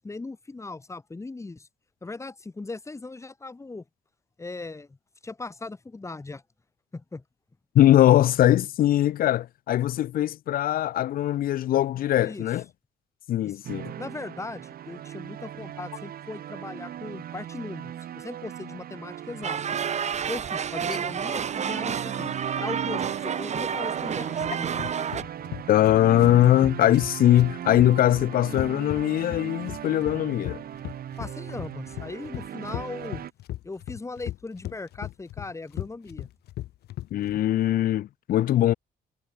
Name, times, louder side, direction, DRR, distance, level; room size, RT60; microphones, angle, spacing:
voice 1, 0.0-1.7 2.0-3.8 4.4-5.0 5.2-6.4 6.9-7.2 12.2-12.5 13.4-13.6 14.0-19.8 20.3-24.8 31.2-33.3 33.6-36.3, left 3 dB, 20° left, 1.4 m, -38 dB
voice 2, 7.7-12.6 13.3-13.9 25.7-30.6 37.1-38.7, left 13 dB, 65° left, 0.5 m, -21 dB
sound 1, 13.6-33.3, right 10 dB, 70° right, 3.7 m, -37 dB
sound 2, 19.4-25.2, right 7 dB, 45° right, 1.1 m, -30 dB
sound 3, 24.4-37.4, left 14 dB, 85° left, 1.2 m, -37 dB
cardioid pair, 100°, 16 cm